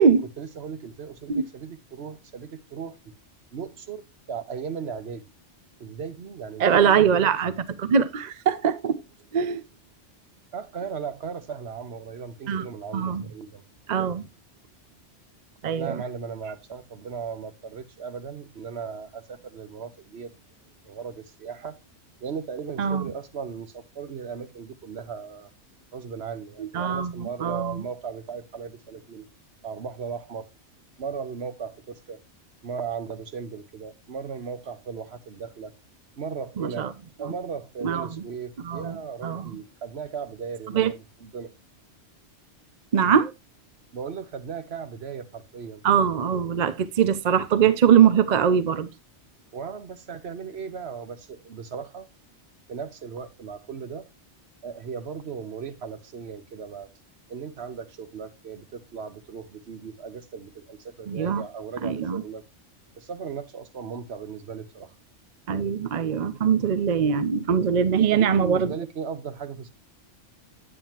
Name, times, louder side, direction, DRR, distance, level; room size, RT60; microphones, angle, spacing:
voice 1, 0.4-3.0 3.5-5.2 5.8-7.6 10.5-13.6 15.8-20.3 20.8-21.8 22.2-25.5 25.9-29.3 29.6-30.5 31.0-32.2 32.6-35.7 36.2-36.9 37.2-41.5 43.9-45.8 49.5-52.1 52.7-54.1 54.6-56.9 57.3-62.4 63.0-64.9 68.0-69.7, right 6 dB, 65° right, 1.2 m, -37 dB
voice 2, 6.6-7.5 7.8-9.0 9.3-9.6 12.5-12.6 12.9-13.2 13.9-14.3 15.6-16.0 22.8-23.1 26.7-27.8 36.6-36.9 37.8-38.1 38.6-39.0 39.2-39.5 40.7-40.9 42.9-43.3 45.8-48.9 61.1-61.4 61.8-62.2 65.5-68.7, right 7 dB, 45° right, 0.6 m, -22 dB
9.1 x 8.7 x 2.9 m
omnidirectional pair, 1.2 m